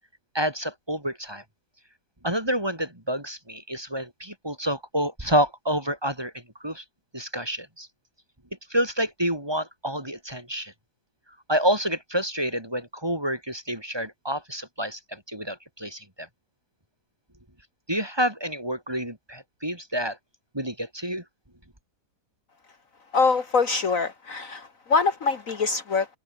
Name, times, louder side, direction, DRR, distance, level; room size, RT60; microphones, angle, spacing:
voice 1, 0.3-1.4 2.2-6.8 7.1-7.9 8.7-10.7 11.5-16.3 17.9-20.2 20.5-21.2, equal, 15° right, 3.1 m, -28 dB
voice 2, 23.1-26.1, left 4 dB, 55° left, 1.7 m, -24 dB
omnidirectional pair, 1.8 m